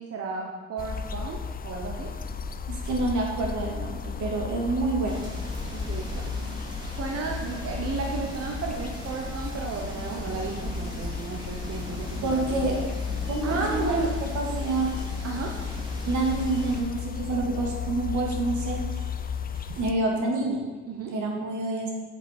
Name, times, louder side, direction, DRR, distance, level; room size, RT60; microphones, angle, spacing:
voice 1, 0.0-2.1 5.7-6.5 6.9-12.9 13.4-14.1 15.2-15.5 20.9-21.1, right 4 dB, 50° right, 0 dB, 1.1 m, -33 dB
sound 1, 0.8-19.9, left 6 dB, 30° left, 0.5 m, -34 dB
voice 2, 2.7-5.1 12.2-12.8 13.3-13.9 14.3-14.9 16.0-18.8 19.8-20.6 21.1-21.9, right 2 dB, 75° right, 0 dB, 2.0 m, -27 dB
sound 2, 5.0-16.8, equal, 15° right, 2.7 m, -39 dB
8.1 x 6.8 x 4.4 m, 1.4 s
cardioid pair, 90°, 30 cm